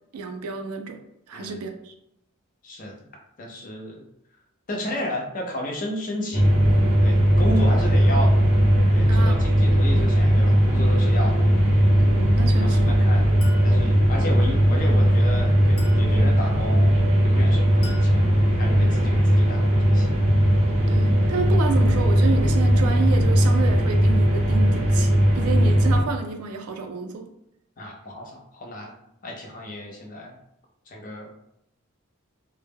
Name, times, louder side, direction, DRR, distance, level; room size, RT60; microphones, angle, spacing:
voice 1, 0.1-1.0 1.3-1.9 9.1-9.5 12.0-13.0 20.9-27.3, right 4 dB, 80° right, 5 dB, 0.4 m, -30 dB
voice 2, 2.6-3.1 3.4-4.0 4.7-6.5 7.0-8.4 8.9-11.4 12.6-13.3 13.6-17.0 17.2-18.3 18.6-20.1 27.8-28.9 29.2-30.3 30.9-31.3, left 1 dB, 35° left, 0 dB, 0.5 m, -33 dB
sound 1, 6.3-26.0, equal, 30° right, 0.5 m, -18 dB
Chink clink, 13.4-13.7 15.8-16.1 17.8-18.1, left 3 dB, 65° left, 0.7 m, -42 dB
2.1 x 2.0 x 3.3 m, 0.78 s
head